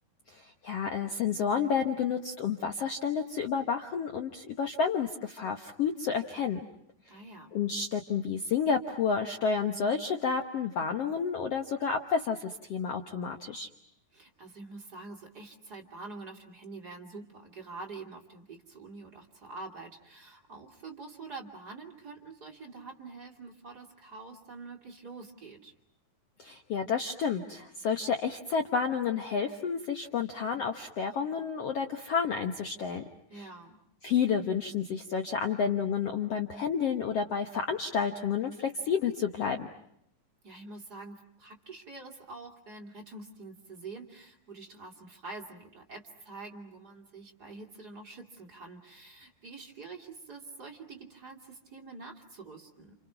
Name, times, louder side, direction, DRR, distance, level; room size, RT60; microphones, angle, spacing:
voice 1, 0.3-6.6 7.5-13.7 26.4-33.0 33.4-33.5 34.0-39.7, left 6 dB, 60° left, 6 dB, 1.7 m, -30 dB
voice 2, 7.1-7.5 14.1-25.7 33.3-33.8 40.4-52.9, right 3 dB, 30° right, 1 dB, 2.9 m, -46 dB
30.0 x 29.0 x 5.9 m, 0.75 s
omnidirectional pair, 4.0 m